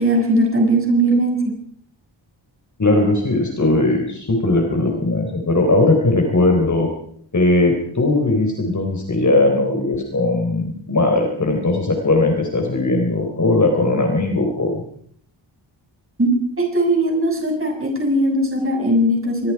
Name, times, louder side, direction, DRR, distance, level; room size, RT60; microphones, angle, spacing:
voice 1, 0.0-1.6 16.2-16.3 16.6-19.5, right 1 dB, 25° right, 1 dB, 6.6 m, -19 dB
voice 2, 2.8-6.9 7.3-14.8, left 2 dB, 35° left, 2 dB, 4.0 m, -18 dB
25.5 x 23.0 x 4.8 m, 0.63 s
wide cardioid pair, 140°, 48 cm